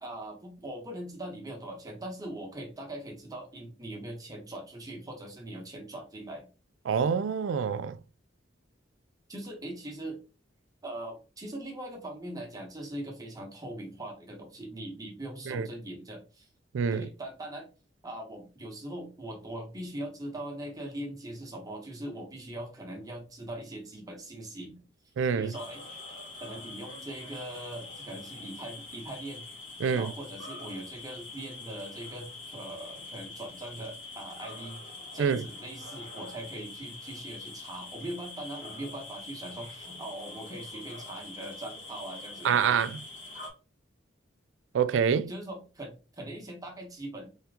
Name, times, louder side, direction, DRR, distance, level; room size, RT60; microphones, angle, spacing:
voice 1, 0.0-6.5 9.3-10.2 10.8-16.5 16.9-17.7 18.0-24.8 25.4-25.8 26.4-29.5 29.9-34.8 35.1-42.6 45.3-47.3, right 1 dB, 20° right, 1.1 m, -41 dB
voice 2, 6.9-8.0 15.5-15.7 16.7-17.1 25.2-25.5 29.8-30.1 35.2-35.4 42.4-42.9 44.7-45.3, right 7 dB, 80° right, 0.3 m, -26 dB
sound 1, 25.5-43.5, left 3 dB, 85° left, 1.7 m, -44 dB
3.5 x 2.9 x 3.5 m
head